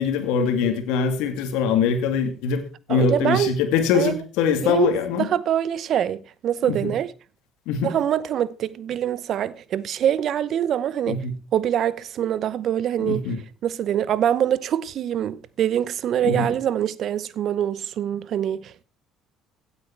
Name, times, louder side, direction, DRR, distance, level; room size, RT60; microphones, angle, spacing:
voice 1, 0.0-2.6 2.9-5.3 6.7-6.9 7.7-7.9 11.1-11.3 13.0-13.4 16.2-16.5, left 6 dB, 75° left, 2.3 m, -23 dB
voice 2, 2.9-3.5 3.9-4.2 4.6-4.9 5.2-7.1 7.8-11.2 11.5-13.3 13.6-18.8, right 10 dB, 60° right, 0.8 m, -24 dB
16.5 x 8.4 x 4.5 m
hypercardioid pair, 65°, 0 cm